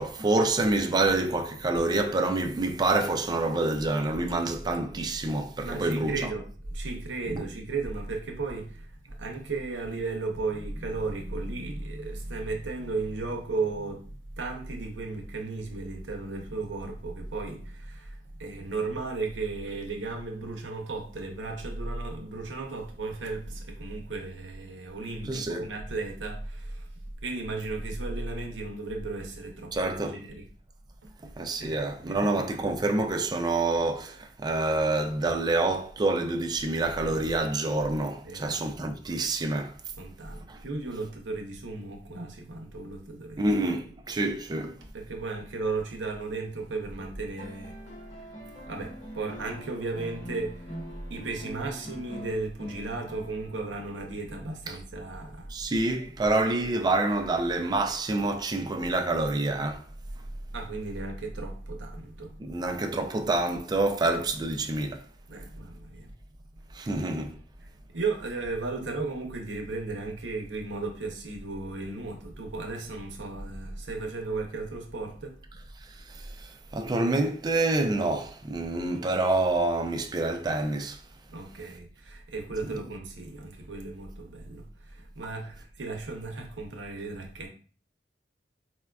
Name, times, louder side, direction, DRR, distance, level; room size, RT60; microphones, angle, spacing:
voice 1, 0.0-6.1 7.3-7.5 25.2-25.7 29.7-30.2 31.2-39.7 40.5-40.6 43.4-44.7 54.7-54.8 55.5-59.8 62.4-65.0 66.7-67.4 75.8-81.0, right 2 dB, 25° right, 0.3 m, -27 dB
voice 2, 5.6-26.9 27.2-30.5 31.0-31.1 31.6-32.3 38.2-38.6 40.0-43.5 44.9-48.0 48.7-50.8 51.1-55.7 60.5-62.5 65.3-66.1 67.6-75.4 81.3-87.5, right 3 dB, 80° right, 0.7 m, -35 dB
sound 1, 47.4-53.8 55.3-55.4, equal, 35° left, 1.0 m, -43 dB
4.2 x 2.3 x 2.2 m
head